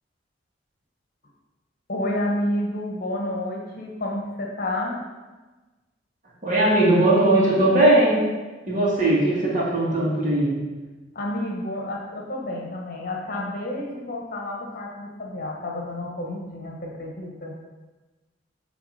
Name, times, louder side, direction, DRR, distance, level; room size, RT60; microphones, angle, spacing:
voice 1, 1.9-5.0 11.1-17.5, left 1 dB, 50° left, -1 dB, 1.2 m, -30 dB
voice 2, 6.4-8.3 8.7-10.5, right 1 dB, 45° right, -6 dB, 2.2 m, -19 dB
8.2 x 3.6 x 5.0 m, 1.2 s
head